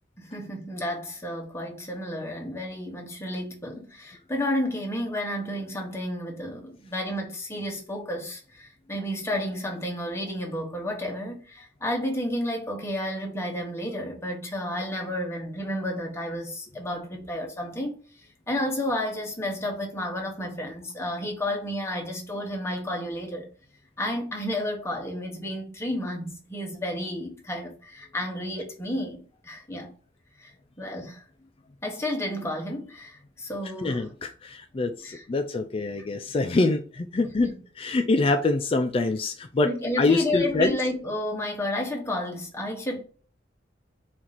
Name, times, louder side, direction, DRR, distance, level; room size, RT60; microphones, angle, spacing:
voice 1, 0.2-18.0 18.5-23.5 24.0-29.9 30.4-31.2 31.8-34.1 35.0-35.2 37.2-37.6 39.6-43.0, left 1 dB, 15° left, 1.0 m, -31 dB
voice 2, 33.8-40.8, left 3 dB, 30° left, 0.3 m, -25 dB
4.4 x 2.5 x 4.0 m
head